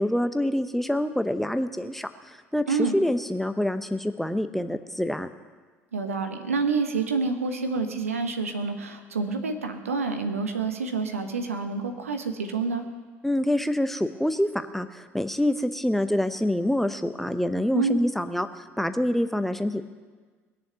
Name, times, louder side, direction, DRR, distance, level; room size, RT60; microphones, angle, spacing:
voice 1, 0.0-5.3 13.2-19.8, left 1 dB, 5° left, 9 dB, 0.9 m, -26 dB
voice 2, 5.9-12.9 17.7-18.0, right 4 dB, 80° right, 7 dB, 1.3 m, -28 dB
20.0 x 7.0 x 9.2 m, 1.4 s
figure-of-eight pair, 60°, 7 cm